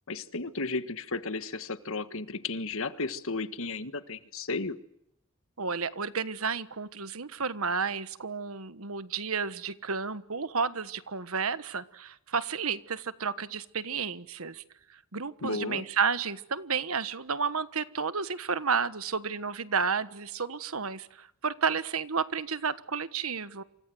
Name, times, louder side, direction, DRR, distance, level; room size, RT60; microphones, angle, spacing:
voice 1, 0.1-4.8 15.4-15.8, left 3 dB, 65° left, 1.6 m, -34 dB
voice 2, 5.6-14.6 14.9-23.6, right 5 dB, 75° right, 1.4 m, -31 dB
28.5 x 25.5 x 7.9 m
head